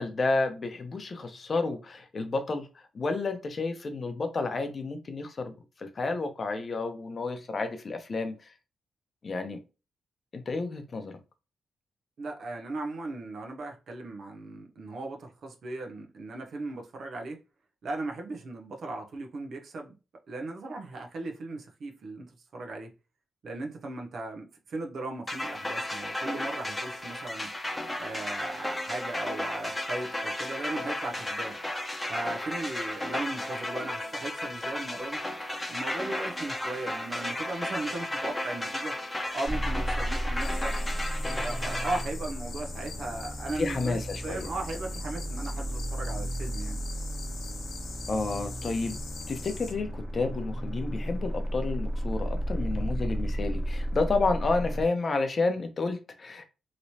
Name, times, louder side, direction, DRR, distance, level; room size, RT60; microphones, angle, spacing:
voice 1, 0.0-2.7 2.9-5.5 5.8-8.3 9.2-9.6 10.3-11.1 43.6-44.5 48.1-49.0 49.3-56.4, left 3 dB, 45° left, 0.7 m, -30 dB
voice 2, 12.2-17.4 17.8-20.0 20.3-22.9 23.4-27.5 28.0-31.5 32.1-35.2 35.7-38.9 39.3-40.8 41.4-46.8, right 2 dB, 65° right, 0.7 m, -37 dB
sound 1, 25.3-42.0, left 1 dB, 15° left, 0.8 m, -34 dB
sound 2, 39.5-54.8, equal, 20° right, 1.3 m, -33 dB
sound 3, 40.4-49.7, left 4 dB, 75° left, 0.9 m, -44 dB
3.1 x 2.9 x 2.7 m
cardioid pair, 70°, 0 cm